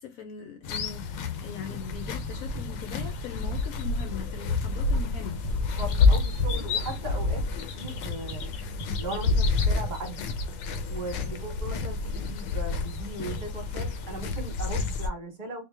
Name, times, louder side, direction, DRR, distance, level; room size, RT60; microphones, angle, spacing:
voice 1, 0.0-5.4, left 7 dB, 70° left, 0.8 m, -41 dB
sound 1, 0.6-15.1, left 3 dB, 90° left, 1.3 m, -29 dB
sound 2, 2.6-2.7 3.0-3.2 3.5-3.7 4.0-4.2 4.5-4.6 5.0-5.1 5.4-5.6 5.9-6.1 6.4-6.6 6.9-7.0 7.4-7.5 7.8-8.0 8.3-8.5 8.8-9.0 9.3-9.4 9.8-9.9, right 4 dB, 65° right, 1.1 m, -39 dB
voice 2, 5.8-7.4 7.7-8.5 9.0-10.3 10.9-15.6, right 1 dB, 30° right, 1.2 m, -38 dB
4.2 x 2.1 x 3.2 m
omnidirectional pair, 1.9 m